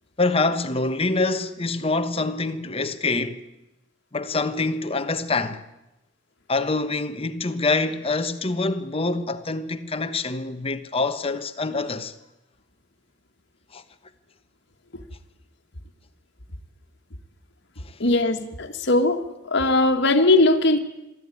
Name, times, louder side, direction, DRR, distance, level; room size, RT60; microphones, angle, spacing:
voice 1, 0.2-3.4 4.1-5.6 6.5-12.1 13.7-13.8, left 3 dB, 30° left, 1.2 m, -25 dB
voice 2, 18.0-19.2 19.5-20.8, left 2 dB, 60° left, 1.8 m, -19 dB
23.0 x 14.0 x 9.9 m
head